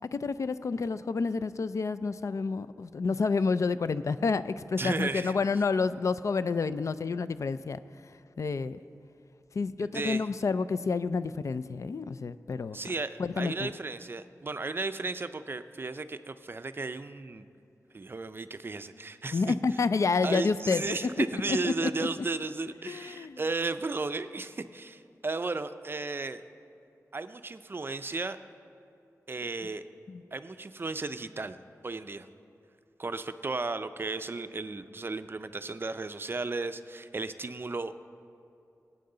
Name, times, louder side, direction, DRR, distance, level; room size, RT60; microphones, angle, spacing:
voice 1, 0.1-7.8 8.4-8.8 9.5-12.8 13.2-13.7 19.3-20.9 21.5-22.1 22.9-23.4 30.1-30.2, left 4 dB, 60° left, 14 dB, 0.3 m, -29 dB
voice 2, 4.8-5.4 9.8-10.3 12.7-17.5 17.9-19.5 20.2-26.4 27.1-28.4 29.3-29.8 30.3-31.6 31.8-32.3 33.0-38.0, right 3 dB, 40° right, 11 dB, 0.4 m, -34 dB
18.0 x 8.6 x 3.9 m, 2.6 s
wide cardioid pair, 80°, 6 cm